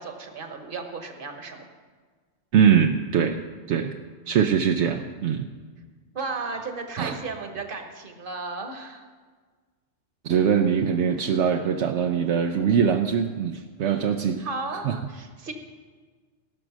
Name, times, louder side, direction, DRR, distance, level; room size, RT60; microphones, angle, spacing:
voice 1, 0.0-1.7 6.1-9.1 13.8-15.5, right 3 dB, 50° right, 5 dB, 1.4 m, -35 dB
voice 2, 2.5-3.4 3.7-4.0 4.3-5.5 7.0-7.2 10.2-14.4 14.7-15.0, right 7 dB, 75° right, 5 dB, 0.9 m, -22 dB
17.0 x 6.3 x 6.1 m, 1.5 s
omnidirectional pair, 1.2 m